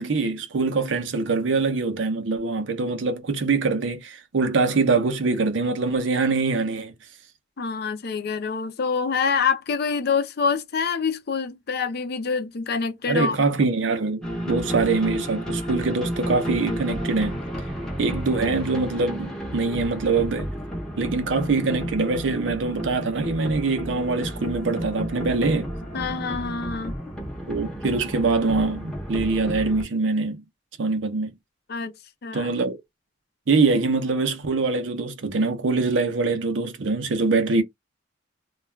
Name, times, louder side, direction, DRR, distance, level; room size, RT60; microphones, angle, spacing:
voice 1, 0.0-6.9 13.1-17.3 18.0-20.5 21.0-25.7 27.5-30.4 30.8-31.3 32.3-32.8 33.5-37.6, right 3 dB, 75° right, 0.6 m, -24 dB
voice 2, 7.6-13.4 25.9-26.9 31.7-31.9 32.2-32.5, left 5 dB, 60° left, 0.5 m, -26 dB
sound 1, 14.2-29.8, equal, 5° left, 0.7 m, -32 dB
2.3 x 2.2 x 3.2 m
head